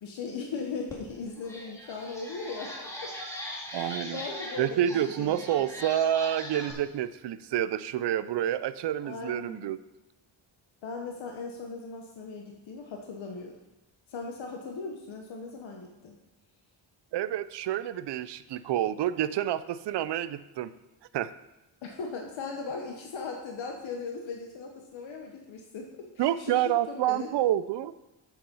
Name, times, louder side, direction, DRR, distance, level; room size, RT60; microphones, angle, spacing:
voice 1, 0.0-3.1 3.6-5.7 9.0-9.7 10.8-13.5 14.1-16.2 21.8-25.9 26.1-27.3, left 4 dB, 80° left, 1 dB, 1.1 m, -38 dB
sound 1, 0.9-1.0 1.4-6.7, left 1 dB, 5° left, 2.1 m, -41 dB
voice 2, 3.7-4.2 4.6-9.8 17.1-20.7 21.1-21.3 26.2-27.9, right 11 dB, 65° right, 14 dB, 0.5 m, -28 dB
7.7 x 7.2 x 5.4 m, 0.96 s
wide cardioid pair, 120°, 46 cm